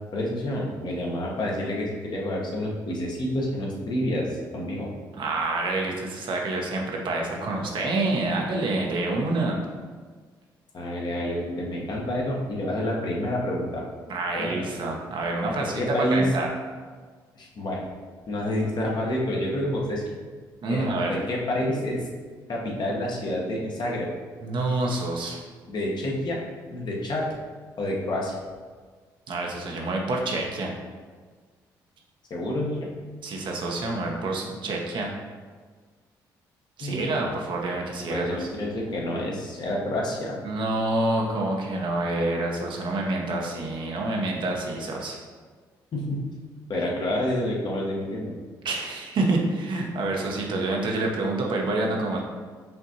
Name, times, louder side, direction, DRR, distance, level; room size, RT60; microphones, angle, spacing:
voice 1, 0.1-4.9 10.7-13.9 14.3-14.7 15.6-16.3 17.4-17.9 18.3-20.0 20.7-22.0 22.5-24.1 25.7-26.4 26.7-27.3 27.8-28.4 32.3-32.9 36.8-37.1 38.1-40.4 45.9-46.2 46.7-48.4, left 1 dB, 50° left, -2 dB, 1.0 m, -28 dB
voice 2, 5.1-9.6 14.1-15.8 16.1-16.5 20.6-21.2 24.4-25.4 29.3-30.7 33.2-35.1 36.8-38.5 40.4-45.2 48.6-52.2, right 2 dB, 60° right, 0 dB, 0.8 m, -27 dB
5.5 x 2.6 x 2.8 m, 1.5 s
supercardioid pair, 55°, 9 cm